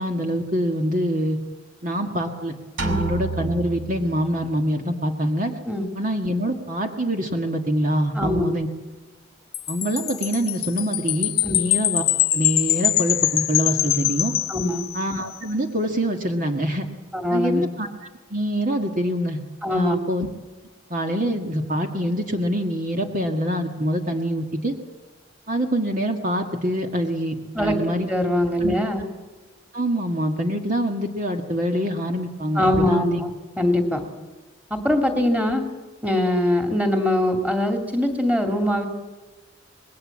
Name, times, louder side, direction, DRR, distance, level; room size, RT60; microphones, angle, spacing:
voice 1, 0.0-1.4 1.8-5.5 5.9-8.7 9.7-12.0 12.3-14.3 14.9-16.9 17.3-17.9 18.3-19.4 19.7-20.3 20.9-24.8 25.5-28.1 28.6-28.7 29.7-33.2, equal, 40° right, 4 dB, 1.7 m, -25 dB
sound 1, 2.8-4.6, right 4 dB, 70° right, 2.9 m, -30 dB
voice 2, 8.1-8.5 11.4-11.6 14.5-14.8 17.1-17.6 19.6-20.0 27.5-27.8 28.1-29.0 32.6-33.3 33.6-34.0 34.7-35.6 36.0-38.9, left 1 dB, 5° right, 5 dB, 2.8 m, -22 dB
Wind chime, 9.5-15.2, left 14 dB, 50° left, 0.8 m, -23 dB
26.0 x 20.5 x 7.4 m, 1.2 s
head